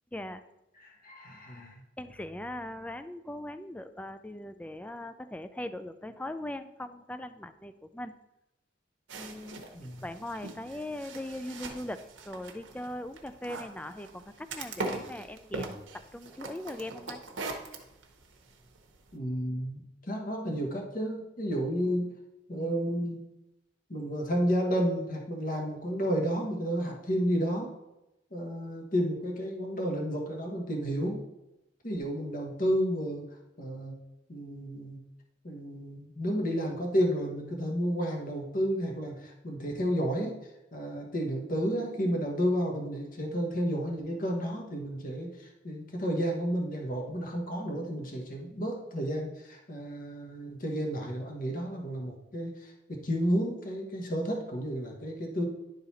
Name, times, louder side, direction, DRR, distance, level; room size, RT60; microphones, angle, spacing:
voice 1, 0.1-0.4 2.0-8.1 9.2-9.6 10.0-17.2, left 1 dB, 5° left, 11 dB, 0.3 m, -40 dB
voice 2, 0.8-1.8 9.7-10.0 19.1-22.1 22.5-23.2 23.9-27.7 28.3-31.2 31.8-33.3 33.6-33.9 34.3-35.0 35.4-40.4 40.7-55.5, equal, 45° left, 1 dB, 1.2 m, -31 dB
sound 1, 9.1-19.1, right 3 dB, 90° right, 1.0 m, -42 dB
10.5 x 4.0 x 4.1 m, 0.94 s
head